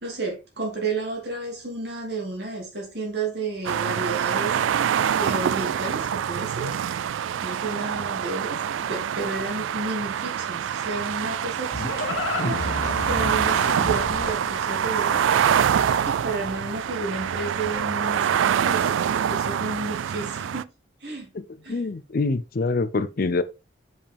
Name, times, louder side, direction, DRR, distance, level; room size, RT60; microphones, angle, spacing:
voice 1, 0.0-4.5 5.2-6.7 7.4-12.1 12.4-12.7 13.0-15.2 16.0-20.7 21.0-21.3 21.6-21.8, right 3 dB, 60° right, 2.6 m, -32 dB
sound 1, 3.6-20.6, right 8 dB, 85° right, 0.3 m, -25 dB
Livestock farm animals working animals, 11.1-16.2, left 2 dB, 75° left, 1.3 m, -31 dB
voice 2, 21.7-23.4, left 3 dB, 50° left, 0.5 m, -25 dB
7.0 x 5.4 x 3.5 m
head